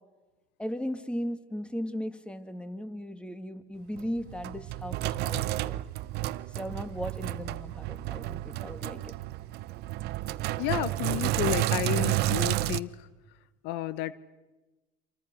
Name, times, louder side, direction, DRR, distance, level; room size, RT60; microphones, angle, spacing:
voice 1, 0.6-5.8 6.5-9.1, equal, 5° left, 9 dB, 2.2 m, -37 dB
Sink (filling or washing), 4.0-12.8, right 16 dB, 60° right, 0.8 m, -31 dB
voice 2, 10.6-13.1 13.6-14.1, left 14 dB, 70° left, 15 dB, 1.0 m, -31 dB
28.0 x 27.0 x 6.3 m, 1.2 s
supercardioid pair, 100°, 19 cm